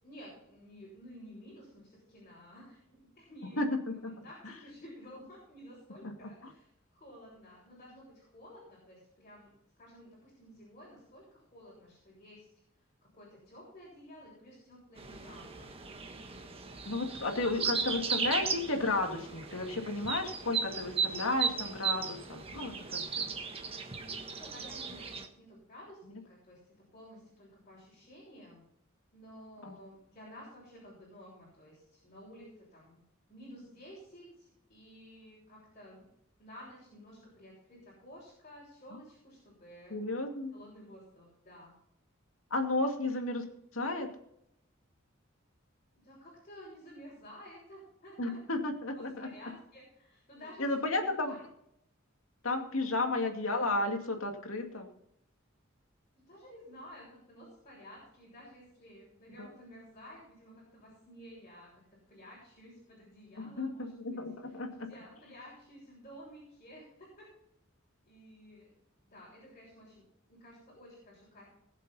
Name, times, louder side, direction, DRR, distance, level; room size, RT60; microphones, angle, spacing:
voice 1, 0.0-3.6 3.9-9.5 9.8-12.5 13.1-15.7 24.0-26.6 26.9-28.6 29.1-33.0 33.3-36.0 36.4-40.0 40.5-41.7 46.0-48.4 48.9-50.7 50.9-51.4 56.2-61.8 62.1-64.6 64.9-67.3 68.1-68.7 69.0-71.5, equal, 35° left, -5 dB, 6.5 m, -53 dB
voice 2, 3.6-3.9 6.0-6.5 16.8-23.3 26.1-26.2 29.6-29.7 39.9-40.5 42.5-43.4 43.7-44.1 48.2-49.3 50.6-51.3 52.4-54.9 59.4-59.5 63.4-64.9, left 2 dB, 90° left, 3 dB, 2.4 m, -33 dB
sound 1, 15.0-25.3, right 6 dB, 30° right, 1.3 m, -36 dB
21.0 x 7.4 x 4.2 m, 0.76 s
head